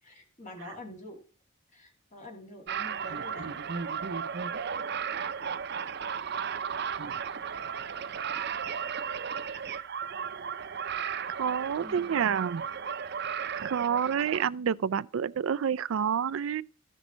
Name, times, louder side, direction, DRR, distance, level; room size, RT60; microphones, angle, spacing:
voice 1, 0.0-1.2 1.7-3.8 11.8-12.5, left 1 dB, 40° left, 2.4 m, -47 dB
sound 1, 2.7-14.4, right 7 dB, 60° right, 0.7 m, -35 dB
voice 2, 11.4-12.6 13.6-16.6, right 7 dB, 85° right, 0.4 m, -28 dB
14.0 x 6.2 x 3.9 m
head